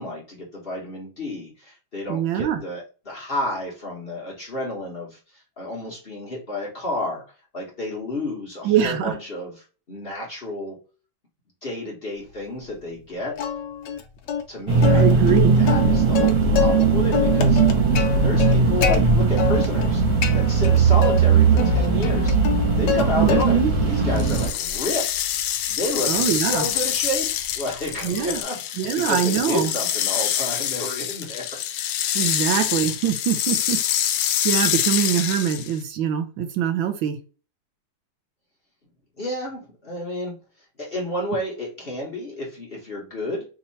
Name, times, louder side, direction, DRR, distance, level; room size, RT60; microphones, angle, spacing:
voice 1, 0.0-7.2 7.5-10.8 11.6-13.4 14.5-17.6 18.2-20.0 20.3-22.4 22.8-25.3 25.7-31.8 39.2-43.5, left 1 dB, 30° left, -3 dB, 1.3 m, -31 dB
voice 2, 2.1-2.6 8.6-9.1 14.9-15.6 23.2-23.7 26.1-26.7 28.0-28.4 28.8-29.7 32.1-37.2, right 9 dB, 80° right, 8 dB, 1.4 m, -23 dB
Plucked string instrument, 13.4-14.0 14.3-14.4 14.8-16.8 17.1-19.0 19.4-19.9 20.2-21.2 21.6-23.0 23.3-23.8 24.2-28.4, left 7 dB, 70° left, 1.2 m, -27 dB
sound 1, 14.7-24.5, right 4 dB, 55° right, 1.7 m, -19 dB
sound 2, 24.2-35.8, left 10 dB, 90° left, 1.4 m, -26 dB
3.6 x 2.9 x 4.1 m, 0.36 s
omnidirectional pair, 2.2 m